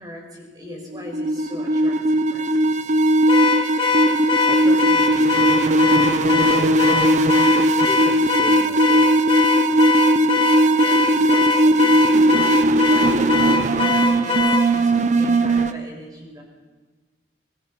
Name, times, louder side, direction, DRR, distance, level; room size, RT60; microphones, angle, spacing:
voice 1, 0.0-2.8 10.2-16.4, left 1 dB, 20° right, 0 dB, 6.6 m, -38 dB
sound 1, 0.9-15.7, right 1 dB, 40° right, 0.9 m, -18 dB
Car / Alarm, 3.3-14.7, left 4 dB, 30° left, 1.6 m, -22 dB
voice 2, 4.5-7.1 7.5-9.4, equal, 10° left, -1 dB, 2.0 m, -36 dB
26.0 x 21.5 x 6.0 m, 1.3 s
head